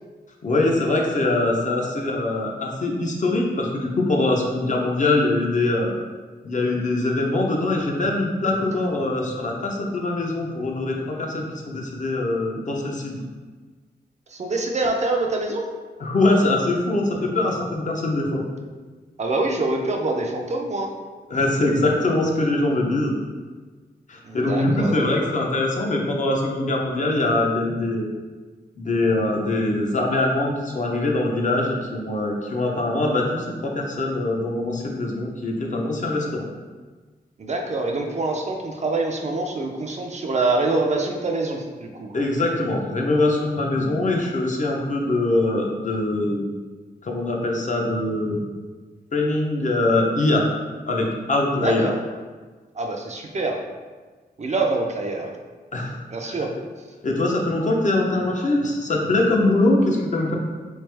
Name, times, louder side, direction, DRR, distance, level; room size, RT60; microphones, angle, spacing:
voice 1, 0.4-5.9 6.4-13.2 16.0-18.4 21.3-23.1 24.1-28.0 28.8-36.5 42.1-46.4 47.0-48.5 49.1-50.5 50.9-51.9 55.7-56.0 56.2-56.4 57.0-60.4, left 2 dB, 45° left, -1 dB, 0.6 m, -23 dB
voice 2, 14.3-15.7 19.2-20.9 24.2-25.3 37.4-42.1 51.6-51.9 52.7-53.6 54.4-55.3 56.1-56.5, right 2 dB, 40° right, 2 dB, 0.4 m, -25 dB
3.4 x 3.2 x 3.3 m, 1.4 s
wide cardioid pair, 145°, 17 cm